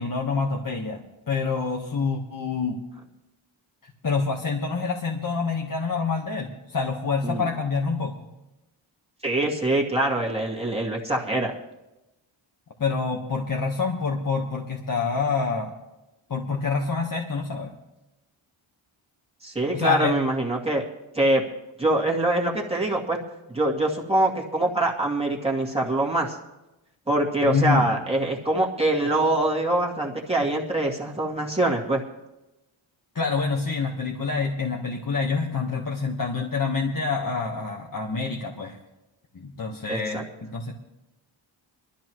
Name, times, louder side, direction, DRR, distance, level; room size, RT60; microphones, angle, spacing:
voice 1, 0.0-2.8 3.8-8.3 12.8-15.7 16.3-17.7 19.7-20.2 27.4-27.9 33.1-38.8 39.3-40.8, left 4 dB, 45° left, 0 dB, 1.4 m, -27 dB
voice 2, 9.2-11.5 19.4-20.8 21.1-21.4 21.8-23.2 23.5-26.4 27.1-32.0 39.9-40.2, right 1 dB, 10° right, -3 dB, 2.2 m, -24 dB
22.0 x 13.0 x 3.1 m, 0.96 s
wide cardioid pair, 100°, 47 cm